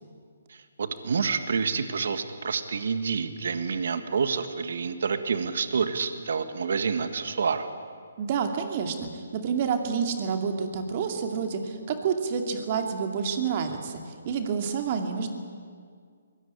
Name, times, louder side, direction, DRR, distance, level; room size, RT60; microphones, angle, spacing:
voice 1, 0.8-7.7, right 5 dB, 65° right, 10 dB, 1.8 m, -28 dB
voice 2, 8.2-14.0 14.2-15.3, right 6 dB, 40° right, 5 dB, 2.5 m, -28 dB
22.0 x 17.5 x 9.9 m, 2.1 s
figure-of-eight pair, 145°, 0 cm